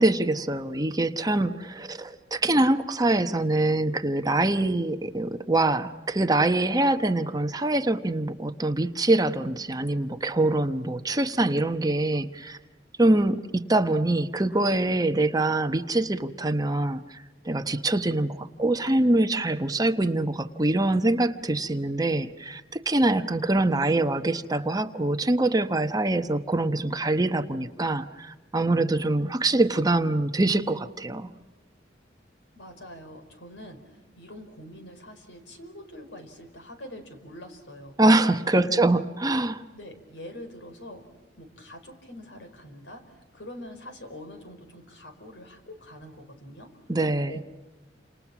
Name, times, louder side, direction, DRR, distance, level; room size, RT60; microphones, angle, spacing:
voice 1, 0.0-12.6 13.0-31.3 38.0-39.6 46.9-47.4, right 2 dB, 20° right, 8 dB, 1.0 m, -24 dB
voice 2, 32.5-38.0 38.5-38.8 39.7-41.0 41.4-46.7 47.3-47.4, left 1 dB, 75° left, 7 dB, 4.7 m, -44 dB
30.0 x 27.0 x 6.1 m, 1.2 s
head